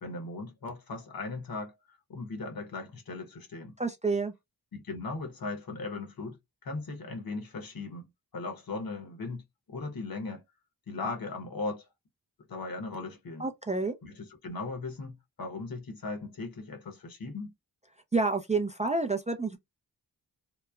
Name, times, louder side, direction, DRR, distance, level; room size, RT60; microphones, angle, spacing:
voice 1, 0.0-3.7 4.7-8.0 8.3-9.4 9.7-10.4 10.9-11.9 12.5-13.5 14.0-17.5, left 3 dB, 60° left, 1.0 m, -38 dB
voice 2, 3.8-4.3 13.4-14.0 18.1-19.6, right 3 dB, 20° right, 0.3 m, -29 dB
2.9 x 2.1 x 2.3 m
wide cardioid pair, 75°, 39 cm